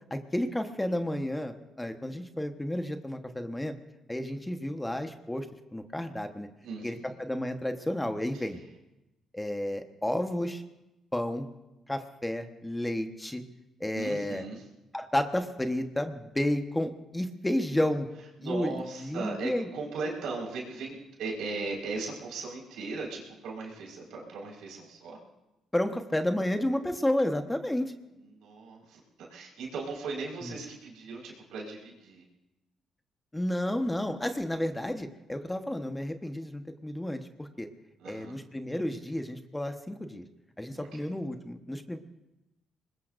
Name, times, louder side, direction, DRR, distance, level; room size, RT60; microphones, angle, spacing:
voice 1, 0.1-3.7 4.1-5.5 5.7-6.5 6.8-8.6 9.3-10.6 11.1-11.5 11.9-13.4 13.8-14.4 14.9-18.1 18.4-19.7 25.7-27.9 30.4-30.5 33.3-37.7 38.0-40.2 40.6-42.0, left 1 dB, 10° left, 6 dB, 1.2 m, -31 dB
voice 2, 6.6-7.1 8.3-8.5 13.9-14.6 18.4-25.2 28.3-32.2 38.0-38.3 40.8-41.0, right 3 dB, 85° right, -1 dB, 4.8 m, -38 dB
25.0 x 21.0 x 2.6 m, 0.94 s
cardioid pair, 90°, 0 cm